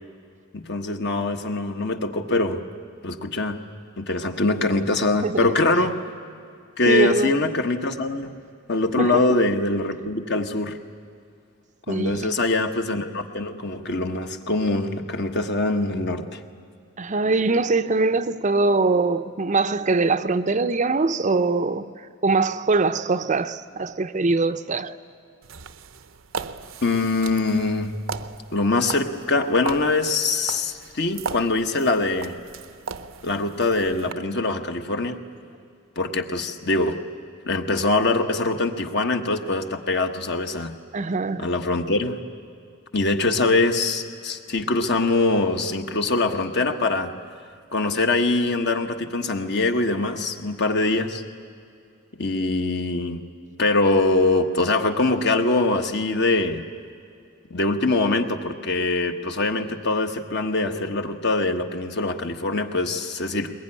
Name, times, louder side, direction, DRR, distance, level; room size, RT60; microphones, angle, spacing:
voice 1, 0.5-2.6 3.0-3.6 4.0-6.0 6.8-8.4 8.7-10.8 11.9-16.4 26.8-27.9 28.5-32.3 33.2-35.2 36.0-37.0 37.5-40.7 41.4-42.2 42.9-47.1 47.7-51.2 52.2-53.2 53.6-56.6 57.5-63.5, left 2 dB, 55° left, 1.4 m, -23 dB
voice 2, 6.9-7.4 9.0-9.2 11.9-12.3 17.0-24.9 40.9-41.5, right 3 dB, 35° right, 0.6 m, -22 dB
sound 1, 25.4-34.1, right 5 dB, 75° right, 0.8 m, -37 dB
21.5 x 21.0 x 10.0 m
head